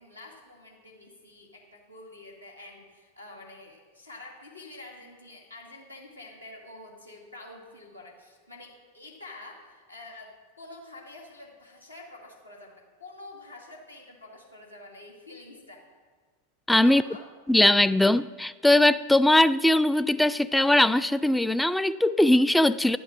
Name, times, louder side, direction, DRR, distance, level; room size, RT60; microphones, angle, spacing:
voice 1, 0.0-15.9 16.7-17.3, left 2 dB, 85° left, -2 dB, 2.4 m, -47 dB
voice 2, 16.7-17.0 17.5-23.0, left 1 dB, 5° left, 15 dB, 0.3 m, -20 dB
11.5 x 7.0 x 6.1 m, 1.5 s
figure-of-eight pair, 90°, 0 cm